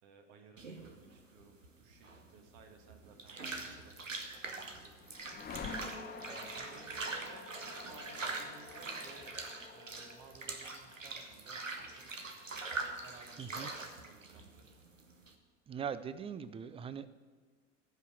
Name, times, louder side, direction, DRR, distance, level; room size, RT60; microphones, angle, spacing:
voice 1, 0.0-9.3 9.7-12.1 13.0-14.8, right 4 dB, 55° right, 5 dB, 1.7 m, -59 dB
sound 1, 0.6-15.3, right 3 dB, 85° right, 1.0 m, -43 dB
sound 2, 4.1-14.1, left 5 dB, 25° left, 1.1 m, -50 dB
voice 2, 13.4-13.7 15.7-17.1, right 7 dB, 15° right, 14 dB, 0.4 m, -41 dB
14.5 x 5.6 x 7.4 m, 1.4 s
figure-of-eight pair, 70°, 38 cm